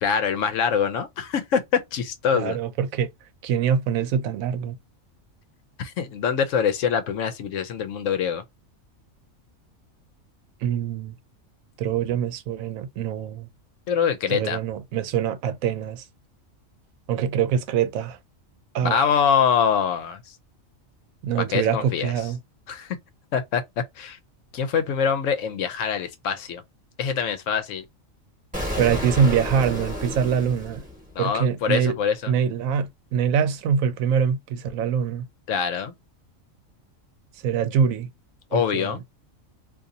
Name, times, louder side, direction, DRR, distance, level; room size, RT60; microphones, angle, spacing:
voice 1, 0.0-2.6 5.8-8.4 13.9-14.6 18.8-20.2 21.5-22.1 22.7-23.0 23.3-23.6 24.0-24.2 24.5-26.6 27.0-27.8 31.2-32.3 35.5-35.9 38.5-39.0, left 7 dB, 70° left, 1.0 m, -24 dB
voice 2, 2.3-3.1 3.4-4.8 10.6-11.1 11.8-13.5 14.3-16.0 17.1-18.2 18.7-19.1 21.2-22.4 28.8-30.8 31.2-32.0 32.3-35.3 37.4-38.1 38.5-38.9, right 7 dB, 85° right, 1.0 m, -24 dB
Explosion, 28.5-31.4, equal, 5° right, 1.3 m, -31 dB
2.7 x 2.6 x 3.8 m
omnidirectional pair, 1.4 m